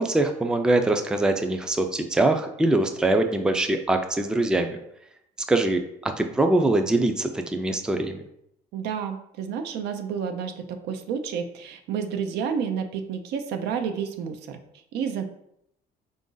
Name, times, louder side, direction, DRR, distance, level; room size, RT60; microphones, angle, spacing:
voice 1, 0.0-4.8 5.5-8.2, right 2 dB, 5° right, 6 dB, 0.3 m, -23 dB
voice 2, 8.7-14.6 14.9-15.2, right 7 dB, 80° right, 7 dB, 0.5 m, -30 dB
3.9 x 2.6 x 3.7 m, 0.76 s
cardioid pair, 110°, 17 cm